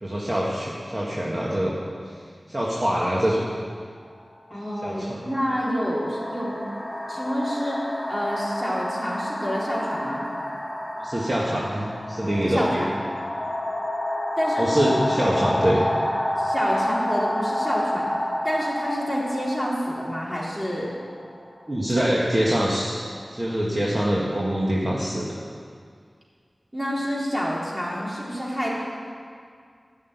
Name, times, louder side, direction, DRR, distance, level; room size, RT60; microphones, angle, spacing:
voice 1, 0.0-1.7 2.0-2.1 2.5-3.5 4.8-5.2 11.0-12.8 14.6-15.8 21.7-23.0 23.3-25.4, equal, 35° right, -5 dB, 1.7 m, -24 dB
sound 1, 4.0-4.2 5.1-21.8, left 1 dB, 25° left, 2.9 m, -29 dB
voice 2, 4.5-6.6 7.1-10.2 12.4-12.9 14.4-14.7 16.4-18.1 18.4-20.9 22.0-22.1 26.7-28.7, equal, 15° right, -5 dB, 3.8 m, -28 dB
13.5 x 6.4 x 9.5 m, 2.1 s
wide cardioid pair, 70°, 0 cm